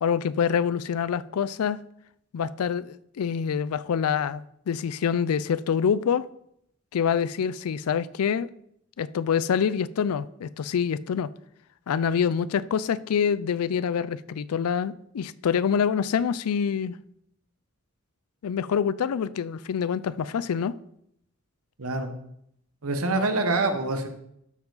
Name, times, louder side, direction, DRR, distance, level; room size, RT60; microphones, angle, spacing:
voice 1, 0.0-1.8 2.3-6.2 6.9-8.5 9.0-11.3 11.9-16.9 18.4-20.8, left 7 dB, 90° left, 0.4 m, -26 dB
voice 2, 21.8-22.1 22.8-24.1, right 2 dB, 85° right, 1.1 m, -25 dB
12.5 x 4.7 x 3.9 m
head